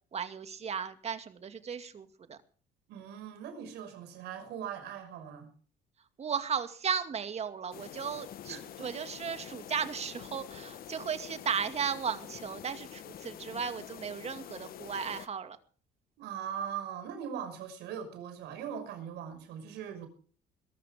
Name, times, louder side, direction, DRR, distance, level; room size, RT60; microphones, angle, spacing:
voice 1, 0.1-2.4 6.2-15.6, right 7 dB, 40° right, 9 dB, 2.3 m, -35 dB
voice 2, 2.9-5.5 8.5-8.9 16.2-20.1, right 8 dB, 85° right, 8 dB, 5.7 m, -40 dB
sound 1, 7.7-15.3, left 11 dB, 60° left, 1.3 m, -46 dB
21.5 x 13.5 x 3.7 m, 0.42 s
cardioid pair, 110°, 17 cm